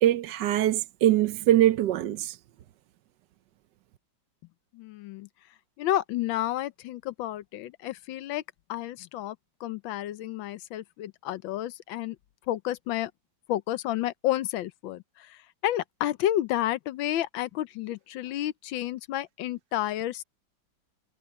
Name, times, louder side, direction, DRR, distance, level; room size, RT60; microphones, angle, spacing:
voice 1, 0.0-2.4, right 12 dB, 70° right, 1.2 m, -23 dB
voice 2, 4.7-5.3 5.8-8.4 8.7-12.2 12.5-13.1 13.5-20.2, left 13 dB, 90° left, 1.5 m, -31 dB
omnidirectional pair, 2.1 m